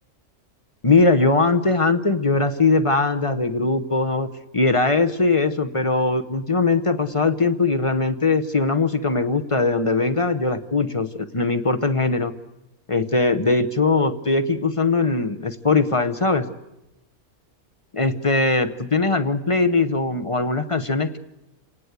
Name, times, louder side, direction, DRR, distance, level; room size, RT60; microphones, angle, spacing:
voice 1, 0.8-4.3 4.5-12.3 12.9-16.4 17.9-21.2, left 3 dB, 30° left, 9 dB, 0.7 m, -20 dB
29.5 x 18.5 x 8.2 m, 0.95 s
omnidirectional pair, 1.6 m